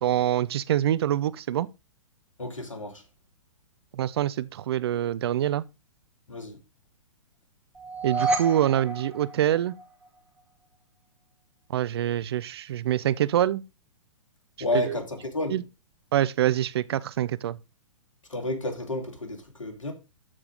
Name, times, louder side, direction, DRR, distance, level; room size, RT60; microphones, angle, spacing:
voice 1, 0.0-1.7 3.9-5.6 8.0-9.8 11.7-13.6 14.7-15.0 15.5-15.6 16.1-17.6, right 11 dB, 50° right, 0.7 m, -25 dB
voice 2, 2.4-3.0 6.3-6.6 14.6-15.6 18.3-19.9, left 2 dB, 75° left, 3.2 m, -31 dB
sound 1, 7.7-10.0, right 3 dB, 5° right, 2.2 m, -30 dB
13.5 x 4.9 x 3.8 m
figure-of-eight pair, 115°, 17 cm